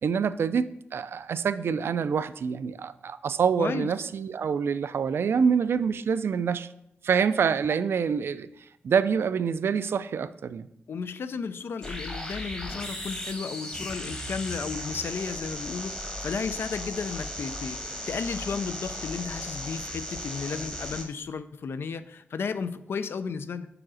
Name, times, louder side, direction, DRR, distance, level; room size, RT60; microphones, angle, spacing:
voice 1, 0.0-6.7 7.0-8.5 8.8-10.7, right 6 dB, 75° right, 14 dB, 0.3 m, -26 dB
voice 2, 3.6-3.9 10.9-23.7, left 5 dB, 70° left, 12 dB, 0.4 m, -33 dB
sound 1, 11.8-21.0, left 1 dB, 20° left, 1.1 m, -36 dB
4.9 x 4.8 x 6.2 m, 0.81 s
wide cardioid pair, 140°, 4 cm